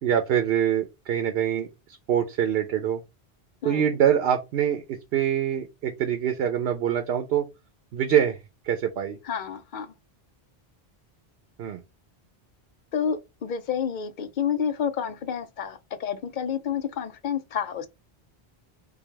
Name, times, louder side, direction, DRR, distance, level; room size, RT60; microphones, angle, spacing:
voice 1, 0.0-3.0 3.6-7.5 7.9-8.4 8.6-9.2 11.6-11.8, right 9 dB, 80° right, 0.8 m, -24 dB
voice 2, 9.3-9.9 12.9-17.9, left 7 dB, 60° left, 0.6 m, -29 dB
4.8 x 2.3 x 3.2 m
omnidirectional pair, 1.0 m